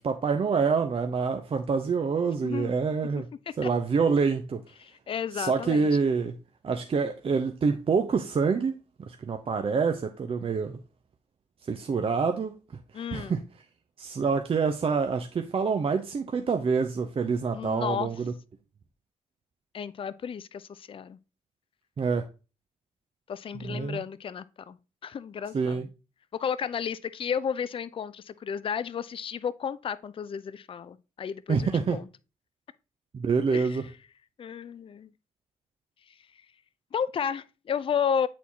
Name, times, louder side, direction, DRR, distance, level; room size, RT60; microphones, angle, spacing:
voice 1, 0.0-3.3 3.6-4.6 5.3-6.3 6.6-8.7 9.1-10.8 11.7-12.6 12.9-13.4 14.0-18.3 22.0-22.2 23.5-24.0 25.5-25.9 31.5-32.0 33.1-33.8, right 5 dB, 40° right, 0.6 m, -26 dB
voice 2, 2.4-2.8 3.6-3.7 4.8-5.9 12.9-13.4 17.5-18.1 19.7-21.2 23.3-24.8 25.0-25.9 26.3-32.0 33.5-33.8 34.4-35.1 36.9-38.3, left 7 dB, 40° left, 0.4 m, -32 dB
8.1 x 4.2 x 2.8 m
hypercardioid pair, 40°, 15 cm